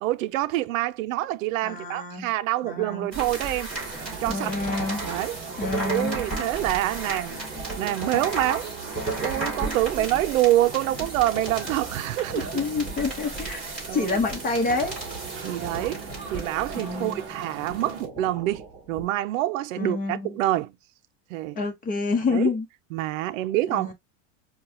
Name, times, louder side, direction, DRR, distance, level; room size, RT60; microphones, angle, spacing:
voice 1, 0.0-3.7 4.2-4.5 5.0-5.4 5.8-7.4 7.8-8.7 9.1-12.6 13.9-14.2 15.4-16.0 16.3-18.6 18.9-20.7 21.3-21.6 22.3-22.5 22.9-23.9, right 15 dB, 85° right, 0.5 m, -26 dB
voice 2, 1.6-2.3 2.6-3.1 4.3-5.1 5.6-6.2 12.3-13.6 13.9-15.0 16.8-17.3 19.8-20.4 21.6-22.7 23.7-23.9, left 3 dB, 20° left, 1.0 m, -28 dB
sound 1, 3.1-19.0, right 2 dB, ahead, 3.2 m, -34 dB
sound 2, 3.7-18.0, right 5 dB, 30° right, 0.9 m, -41 dB
5.3 x 2.4 x 2.8 m
supercardioid pair, 150°, 39 cm